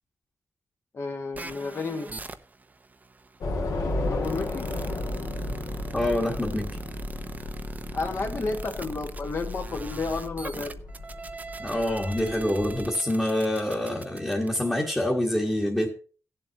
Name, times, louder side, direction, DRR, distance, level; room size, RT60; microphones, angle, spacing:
voice 1, 0.9-2.1 4.1-4.7 7.9-10.7, left 3 dB, 45° left, 5 dB, 1.7 m, -31 dB
sound 1, 1.3-14.9, right 3 dB, 30° right, 0.8 m, -42 dB
Train / Subway metro underground, 3.4-12.8, left 2 dB, 85° left, 2.8 m, -34 dB
voice 2, 5.9-6.8 11.6-15.9, left 1 dB, 10° left, -2 dB, 1.6 m, -26 dB
17.5 x 7.5 x 2.9 m, 0.40 s
wide cardioid pair, 155°, 6 cm